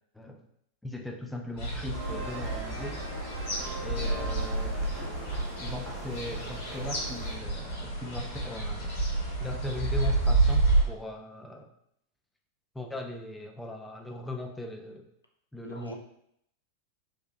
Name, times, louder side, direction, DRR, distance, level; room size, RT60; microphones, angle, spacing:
voice 1, 0.8-3.0 3.8-4.9 5.6-8.9 9.4-11.7 12.7-15.1 15.5-16.0, left 1 dB, 5° left, 2 dB, 0.4 m, -39 dB
sound 1, 1.6-10.8, right 2 dB, 55° left, 1.2 m, -29 dB
sound 2, 1.9-7.4, right 2 dB, 40° right, 0.8 m, -41 dB
voice 2, 4.0-4.5 15.6-16.0, left 1 dB, 85° left, 2 dB, 0.4 m, -43 dB
3.8 x 2.5 x 2.3 m, 0.72 s
figure-of-eight pair, 90°, 0 cm